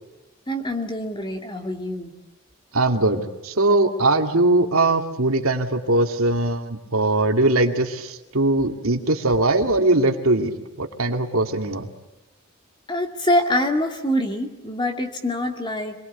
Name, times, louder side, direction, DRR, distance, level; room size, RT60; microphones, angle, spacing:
voice 1, 0.5-2.1 12.9-15.9, left 1 dB, 20° left, 4 dB, 2.4 m, -25 dB
voice 2, 2.7-10.5 10.8-11.9, right 2 dB, 85° right, 5 dB, 2.3 m, -20 dB
27.0 x 21.0 x 8.2 m, 1.1 s
head